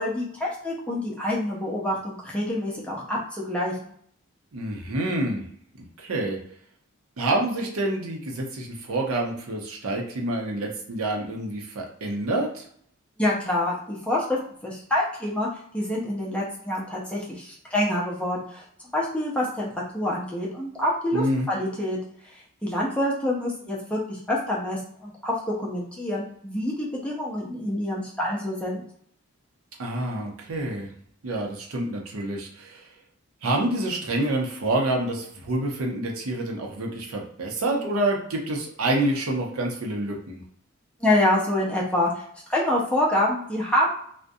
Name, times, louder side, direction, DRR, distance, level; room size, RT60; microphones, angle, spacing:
voice 1, 0.0-3.8 13.2-14.4 14.6-15.5 15.7-18.6 18.9-19.7 19.9-22.0 22.6-28.8 41.0-42.2 42.5-44.0, left 1 dB, 5° left, -4 dB, 0.5 m, -26 dB
voice 2, 4.5-5.4 6.0-6.4 7.2-12.7 21.1-21.5 29.8-30.9 31.2-32.9 33.4-40.4, right 1 dB, 90° right, 0 dB, 0.6 m, -27 dB
2.4 x 2.1 x 2.6 m, 0.62 s
head